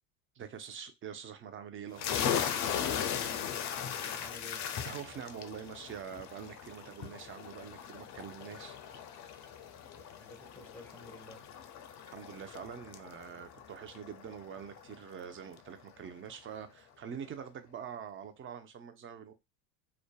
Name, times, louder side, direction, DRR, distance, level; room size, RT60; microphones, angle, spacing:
voice 1, 0.4-2.4 4.8-8.8 12.1-19.3, right 8 dB, 35° right, 0.5 m, -45 dB
sound 1, 2.0-15.3, left 8 dB, 50° left, 0.4 m, -38 dB
voice 2, 2.9-4.7 9.9-11.5, left 2 dB, 5° left, 0.8 m, -52 dB
2.5 x 2.2 x 2.2 m
supercardioid pair, 95°, 38 cm